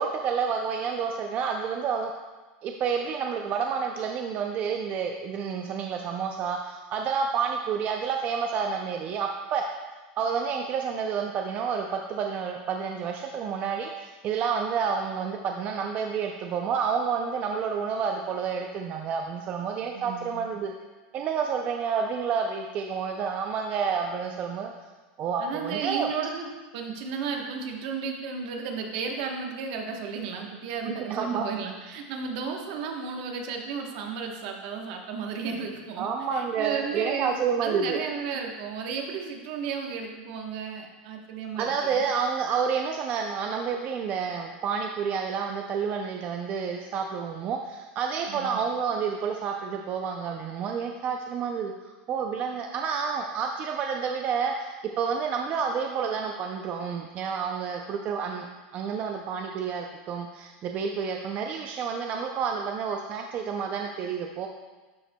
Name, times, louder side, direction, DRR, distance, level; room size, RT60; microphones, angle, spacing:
voice 1, 0.0-2.1 2.6-9.7 10.2-20.7 21.1-24.7 25.2-26.1 30.9-31.5 36.0-38.0 41.6-51.7 52.1-58.5 58.7-64.5, right 6 dB, 30° right, 3 dB, 0.4 m, -29 dB
voice 2, 19.9-20.5 25.4-42.0 48.3-48.6, right 5 dB, 60° right, 2 dB, 1.1 m, -34 dB
12.0 x 5.5 x 2.2 m, 1.3 s
supercardioid pair, 150°, 5 cm